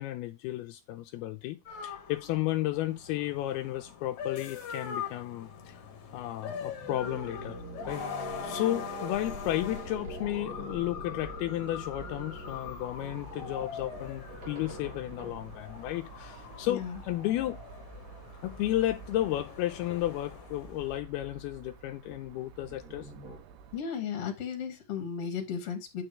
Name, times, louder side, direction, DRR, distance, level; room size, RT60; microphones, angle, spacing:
voice 1, 0.0-5.8 6.1-17.6 18.4-23.1, left 14 dB, 85° left, 2.3 m, -33 dB
sound 1, 1.7-21.0, left 7 dB, 55° left, 2.2 m, -42 dB
sound 2, 5.8-15.9 21.1-21.8 22.5-23.4, right 3 dB, 50° right, 1.2 m, -45 dB
sound 3, 11.2-23.8, right 6 dB, 75° right, 2.9 m, -50 dB
voice 2, 16.6-17.0 23.7-26.0, left 7 dB, 40° left, 2.4 m, -35 dB
9.6 x 4.4 x 5.0 m
omnidirectional pair, 5.1 m